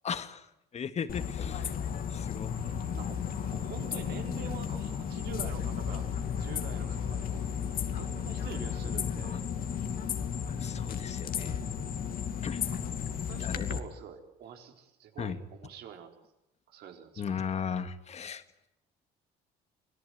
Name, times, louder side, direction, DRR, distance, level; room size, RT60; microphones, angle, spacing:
voice 1, 0.0-0.5 0.7-1.7 2.1-2.5 9.2-9.4 10.5-11.6 12.4-12.6 13.4-13.7 15.2-15.4 17.2-18.4, left 7 dB, 40° left, 11 dB, 1.9 m, -36 dB
sound 1, 1.1-13.8, left 8 dB, 60° left, 2.5 m, -34 dB
Bowed string instrument, 2.5-13.7, right 2 dB, 55° right, 5.8 m, -52 dB
voice 2, 2.9-6.1 6.4-7.4 7.8-9.5 12.7-12.8 13.2-16.2 16.7-17.4, right 8 dB, 75° right, 5 dB, 4.4 m, -46 dB
26.5 x 18.0 x 9.5 m, 0.90 s
cardioid pair, 110°, 17 cm